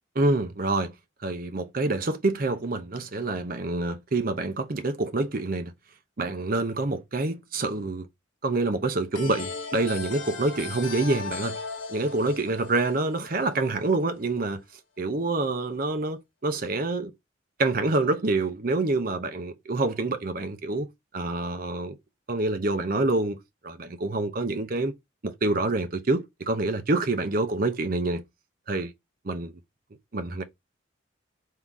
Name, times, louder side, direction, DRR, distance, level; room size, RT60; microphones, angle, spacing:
voice 1, 0.2-0.9 1.2-5.7 6.2-8.1 8.4-11.6 11.9-14.6 15.0-17.1 17.6-20.9 21.1-22.0 22.3-24.9 25.2-28.2 28.7-28.9 29.2-29.5 30.1-30.4, right 2 dB, 45° right, 0.7 m, -27 dB
sound 1, 9.1-13.8, left 4 dB, 65° left, 0.9 m, -37 dB
3.7 x 2.8 x 4.6 m
head